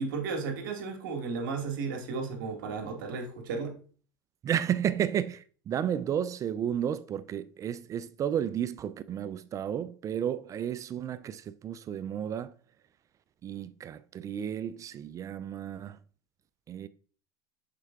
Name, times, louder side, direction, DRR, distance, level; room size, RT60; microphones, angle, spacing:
voice 1, 0.0-3.7, right 4 dB, 75° right, 1.7 m, -34 dB
voice 2, 4.4-12.5 13.4-16.0 16.7-16.9, right 9 dB, 30° right, 0.4 m, -32 dB
6.6 x 4.5 x 3.6 m
supercardioid pair, 110°, 11 cm